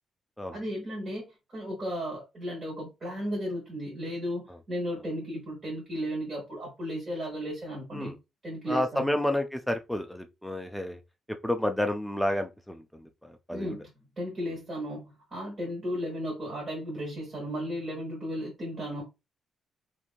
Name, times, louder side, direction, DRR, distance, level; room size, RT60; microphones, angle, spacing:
voice 1, 0.5-8.1 8.4-9.2 13.5-19.0, equal, 35° right, 1.5 m, -35 dB
voice 2, 8.7-11.0 11.4-13.7, left 1 dB, ahead, 0.4 m, -30 dB
3.0 x 2.6 x 2.4 m
cardioid pair, 125°, 0 cm